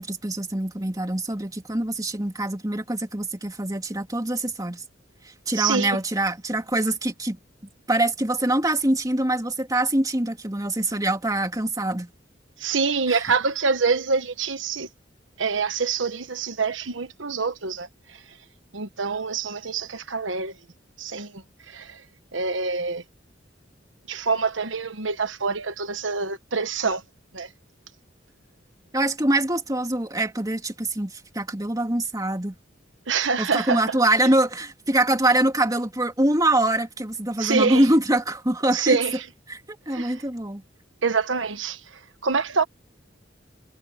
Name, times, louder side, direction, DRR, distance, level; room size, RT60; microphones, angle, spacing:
voice 1, 0.0-4.8 5.2-7.4 7.9-12.1 13.1-13.2 28.9-32.5 33.4-39.0 39.5-39.6 39.9-40.6, right 1 dB, 20° right, 2.9 m, -24 dB
voice 2, 5.5-6.0 12.6-14.9 15.4-18.2 18.7-20.5 21.0-22.0 22.3-23.0 24.1-27.0 27.3-27.5 33.1-33.8 37.4-37.8 38.7-39.2 39.9-40.1 41.0-42.6, right 5 dB, 90° right, 1.3 m, -26 dB
head